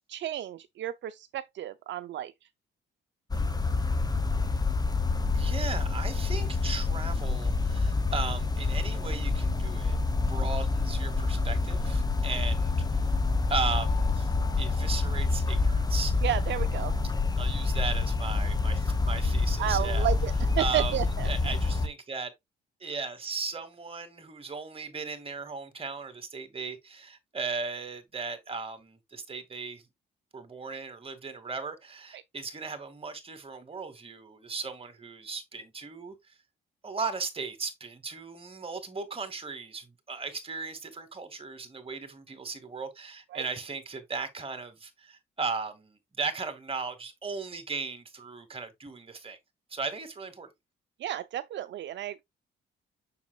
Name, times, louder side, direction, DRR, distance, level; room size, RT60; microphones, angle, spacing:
voice 1, 0.1-2.3 16.2-16.9 19.6-21.3 32.1-32.2 43.3-43.4 51.0-52.2, right 12 dB, 65° right, 0.5 m, -32 dB
sound 1, 3.3-21.9, left 3 dB, 20° left, 1.1 m, -27 dB
voice 2, 5.3-10.0 10.3-13.1 13.5-14.3 14.6-16.1 17.4-20.1 20.6-21.0 21.2-22.3 22.8-29.8 30.3-36.4 36.8-49.4 49.7-50.5, right 4 dB, 30° right, 2.1 m, -37 dB
7.1 x 6.4 x 2.3 m
cardioid pair, 90°, 20 cm